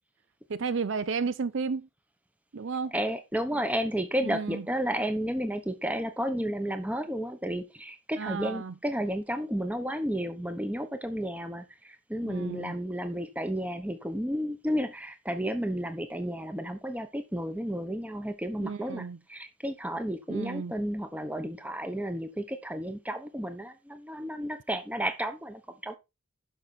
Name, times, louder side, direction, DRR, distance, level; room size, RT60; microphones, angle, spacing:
voice 1, 0.5-1.9 2.5-2.9 3.5-3.6 4.2-4.7 8.2-8.7 12.2-12.7 18.6-19.2 20.3-20.7, right 5 dB, 55° right, 0.5 m, -33 dB
voice 2, 2.9-25.9, equal, 5° right, 1.0 m, -32 dB
11.5 x 5.4 x 4.4 m
head